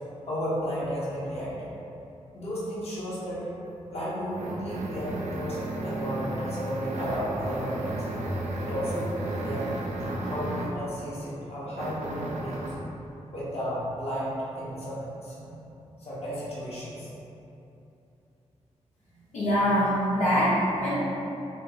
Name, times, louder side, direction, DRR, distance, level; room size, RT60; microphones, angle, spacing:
voice 1, 0.2-1.7 2.3-3.5 3.9-8.0 8.6-9.1 9.4-9.7 10.0-12.7 13.3-15.5 16.0-17.1, equal, 55° left, -8 dB, 1.3 m, -33 dB
sound 1, 3.7-10.9 11.8-12.9, right 1 dB, 80° right, 0.6 m, -33 dB
voice 2, 19.1-21.0, equal, 85° left, -10 dB, 1.1 m, -24 dB
6.2 x 2.1 x 3.9 m, 2.9 s
cardioid pair, 80°, 12 cm